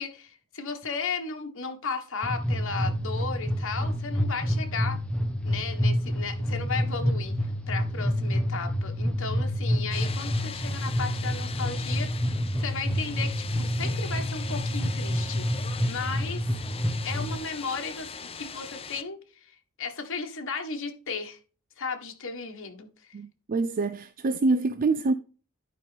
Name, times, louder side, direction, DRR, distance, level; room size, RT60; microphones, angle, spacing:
voice 1, 0.0-5.0 5.4-12.1 12.6-15.5 15.8-16.5 17.0-18.1 18.3-21.4 21.8-23.2, left 5 dB, 65° left, 1.7 m, -35 dB
sound 1, 2.2-17.4, equal, 5° left, 1.3 m, -28 dB
sound 2, 9.9-19.0, left 5 dB, 25° left, 0.7 m, -40 dB
voice 2, 23.1-25.1, right 3 dB, 40° right, 0.4 m, -26 dB
11.5 x 5.4 x 3.5 m
head